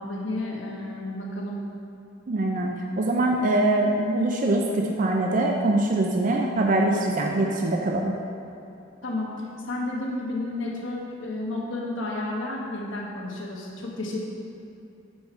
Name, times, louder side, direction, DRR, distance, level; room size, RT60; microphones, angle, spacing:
voice 1, 0.0-1.6 9.0-9.3 9.7-14.2, left 2 dB, 80° left, -2 dB, 1.1 m, -31 dB
voice 2, 2.3-2.7 3.0-8.1, right 2 dB, 45° right, 0 dB, 0.5 m, -23 dB
5.9 x 5.4 x 4.4 m, 2.7 s
head